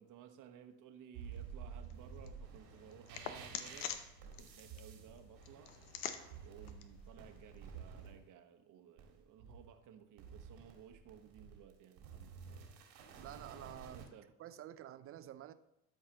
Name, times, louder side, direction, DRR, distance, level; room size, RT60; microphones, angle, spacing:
voice 1, 0.0-5.7 6.4-12.7 13.9-14.3, right 9 dB, 50° right, 1.1 m, -58 dB
sound 1, 1.1-8.2 9.0-9.8 10.2-14.1, right 6 dB, 70° right, 1.9 m, -52 dB
sound 2, 1.3-8.1, left 9 dB, 75° left, 0.8 m, -49 dB
voice 2, 13.2-14.0 14.4-15.5, right 12 dB, 35° right, 0.5 m, -49 dB
12.5 x 4.7 x 2.9 m
hypercardioid pair, 80°, 40 cm